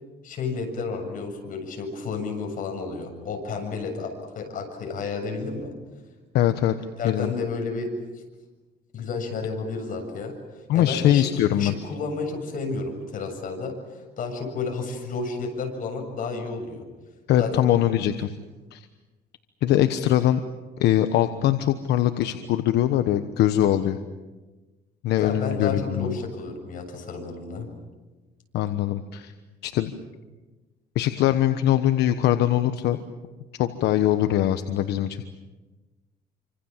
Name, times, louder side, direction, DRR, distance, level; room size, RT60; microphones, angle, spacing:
voice 1, 0.2-5.7 7.0-7.9 8.9-10.3 10.7-16.8 17.4-17.7 25.2-27.7, left 4 dB, 55° left, 3 dB, 7.5 m, -31 dB
voice 2, 6.3-6.7 7.0-7.3 10.7-11.7 17.3-18.3 18.7-18.9 19.6-20.4 20.8-24.0 25.0-26.2 28.5-29.3 29.6-29.9 30.9-33.0 33.6-35.2, left 12 dB, 80° left, 9 dB, 1.2 m, -22 dB
28.5 x 25.5 x 7.5 m, 1.2 s
cardioid pair, 110°, 17 cm